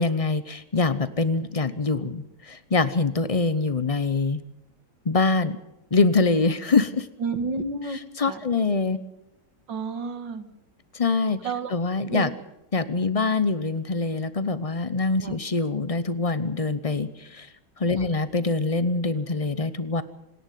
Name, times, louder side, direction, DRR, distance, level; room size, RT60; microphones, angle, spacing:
voice 1, 0.0-4.4 5.1-5.6 5.9-7.1 8.2-9.0 10.9-11.4 11.7-12.3 12.7-17.5 17.8-20.0, left 3 dB, 50° left, 14 dB, 0.4 m, -24 dB
voice 2, 7.2-8.4 9.7-10.5 11.4-11.7 12.1-12.3 15.2-15.4 18.0-18.1, right 4 dB, 75° right, 10 dB, 2.3 m, -31 dB
26.5 x 11.0 x 9.2 m, 0.90 s
omnidirectional pair, 2.0 m